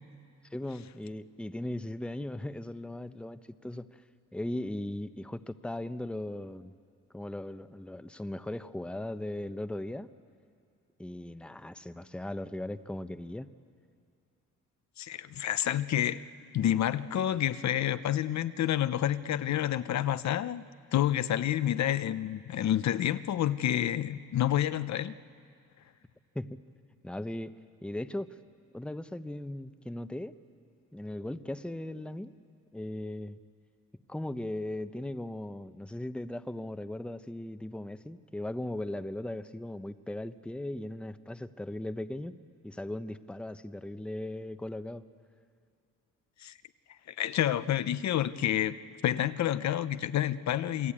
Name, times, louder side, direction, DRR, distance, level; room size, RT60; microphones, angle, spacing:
voice 1, 0.5-4.0 4.3-6.7 7.1-10.1 11.0-13.5 26.3-26.6 27.0-28.4 28.7-30.4 30.9-32.3 32.7-33.4 34.1-42.4 42.6-45.0, left 1 dB, 5° left, 11 dB, 0.9 m, -38 dB
voice 2, 15.0-16.2 16.5-20.7 20.9-25.1 46.4-46.5 47.1-48.8 49.0-50.9, left 11 dB, 65° left, 13 dB, 0.8 m, -29 dB
28.0 x 21.0 x 8.7 m, 2.4 s
cardioid pair, 90°, 30 cm